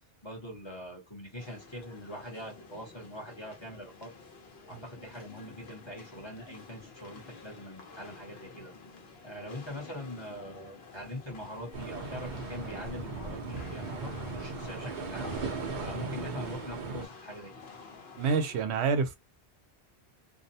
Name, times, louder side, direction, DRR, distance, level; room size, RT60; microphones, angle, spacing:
voice 1, 0.2-4.1 4.7-8.7 9.2-15.3 15.8-17.5, equal, 30° left, 0.8 m, -43 dB
sound 1, 1.4-18.6, left 4 dB, 70° left, 1.0 m, -50 dB
sound 2, 11.7-17.1, right 3 dB, 55° right, 0.7 m, -37 dB
voice 2, 18.2-19.2, right 5 dB, 80° right, 0.9 m, -27 dB
2.6 x 2.1 x 2.6 m
omnidirectional pair, 1.1 m